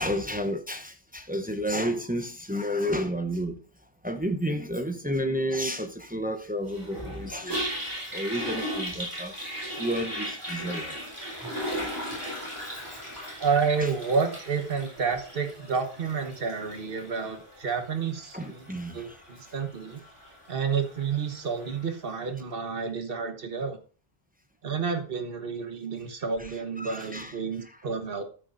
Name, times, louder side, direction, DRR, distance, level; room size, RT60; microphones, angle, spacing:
voice 1, 0.0-3.6 4.0-7.7 8.1-9.5 9.8-11.0 11.4-11.9 12.6-13.2 13.8-13.9 18.3-19.2 26.4-26.5 26.8-27.4 27.6-27.8, equal, 10° right, 0.7 m, -31 dB
Toilet flush, 6.7-21.9, equal, 25° right, 4.2 m, -37 dB
voice 2, 13.4-18.6 18.9-20.0 20.5-23.8 24.6-28.2, right 5 dB, 60° right, 1.5 m, -30 dB
13.0 x 9.0 x 2.6 m
omnidirectional pair, 1.1 m